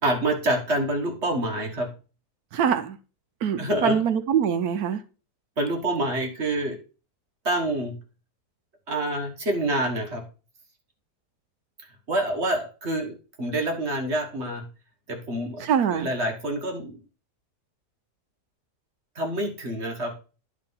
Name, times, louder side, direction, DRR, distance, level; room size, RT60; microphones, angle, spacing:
voice 1, 0.0-1.9 3.6-4.0 5.6-6.8 7.4-8.0 8.9-10.2 12.1-14.6 15.1-17.0 19.1-20.1, right 1 dB, 45° right, 1.6 m, -27 dB
voice 2, 2.5-3.0 3.4-5.0 15.6-16.1, right 8 dB, 70° right, 1.2 m, -24 dB
10.0 x 3.8 x 5.5 m
omnidirectional pair, 1.7 m